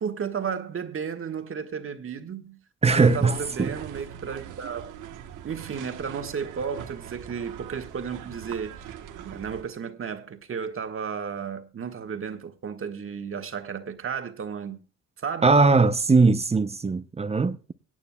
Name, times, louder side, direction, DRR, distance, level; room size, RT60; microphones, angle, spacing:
voice 1, 0.0-2.6 2.8-4.9 5.4-8.8 9.3-14.8 15.2-15.5, right 6 dB, 45° right, 1.5 m, -33 dB
voice 2, 2.8-3.7 15.4-17.7, right 4 dB, 20° right, 0.6 m, -20 dB
sound 1, 2.9-9.6, right 10 dB, 85° right, 1.2 m, -42 dB
25.0 x 8.9 x 2.2 m
cardioid pair, 90°, 30 cm